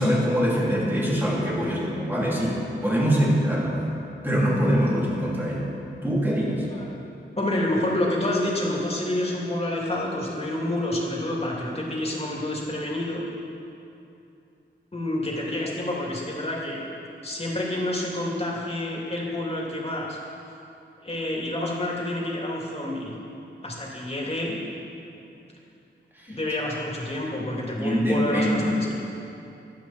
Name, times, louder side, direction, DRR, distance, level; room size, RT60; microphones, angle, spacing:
voice 1, 0.0-3.8 4.2-5.7 6.0-6.7 26.2-26.4 27.8-28.7, equal, 10° right, -6 dB, 3.4 m, -23 dB
voice 2, 7.4-13.2 14.9-16.8 17.2-20.2 21.0-23.1 23.6-24.6 26.3-29.0, left 1 dB, 30° left, -3 dB, 3.0 m, -28 dB
24.0 x 9.0 x 4.5 m, 2.7 s
wide cardioid pair, 115°, 20 cm